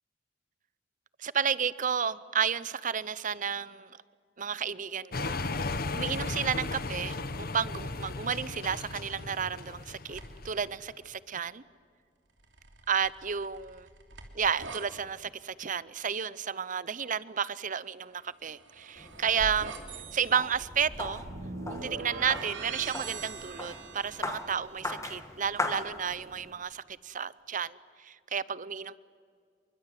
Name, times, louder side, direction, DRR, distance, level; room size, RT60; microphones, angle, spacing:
voice 1, 1.2-3.9 4.4-5.7 5.9-11.6 12.9-13.9 14.3-19.8 20.1-21.2 21.7-28.9, right 7 dB, 45° right, 19 dB, 0.7 m, -32 dB
sound 1, 5.1-10.8, left 3 dB, 55° left, 1.2 m, -35 dB
sound 2, 10.1-10.6 12.4-14.8 18.3-24.7, right 4 dB, 80° right, 3.1 m, -43 dB
sound 3, 19.0-26.5, left 2 dB, 15° left, 1.9 m, -39 dB
27.5 x 23.5 x 9.3 m, 2.1 s
head